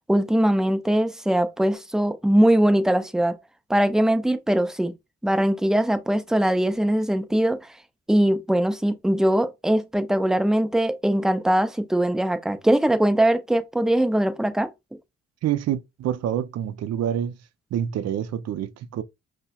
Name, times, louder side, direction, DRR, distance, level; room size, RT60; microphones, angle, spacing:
voice 1, 0.1-3.4 3.7-4.9 5.2-7.6 8.1-14.7, right 1 dB, ahead, 0.4 m, -21 dB
voice 2, 15.4-17.4 17.7-19.0, right 10 dB, 60° right, 0.5 m, -27 dB
5.5 x 2.1 x 2.3 m
cardioid pair, 90°, 30 cm